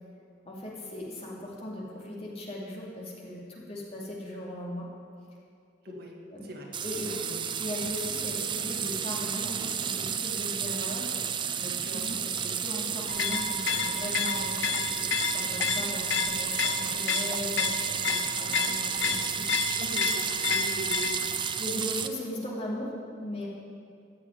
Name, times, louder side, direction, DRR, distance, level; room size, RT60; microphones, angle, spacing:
voice 1, 0.5-4.8 6.3-6.5 6.8-7.1 7.6-11.1 11.5-12.1 12.6-19.5 21.6-22.9 23.2-23.5, left 1 dB, 35° left, -4 dB, 2.7 m, -38 dB
voice 2, 5.8-6.1 6.4-6.8 7.0-7.5 11.9-12.3 19.8-21.5, right 1 dB, 55° right, 0 dB, 1.8 m, -40 dB
sound 1, 6.7-22.1, right 8 dB, 25° right, 0.4 m, -32 dB
sound 2, 13.1-21.4, left 5 dB, 65° left, 0.8 m, -31 dB
14.5 x 6.5 x 9.4 m, 2.4 s
head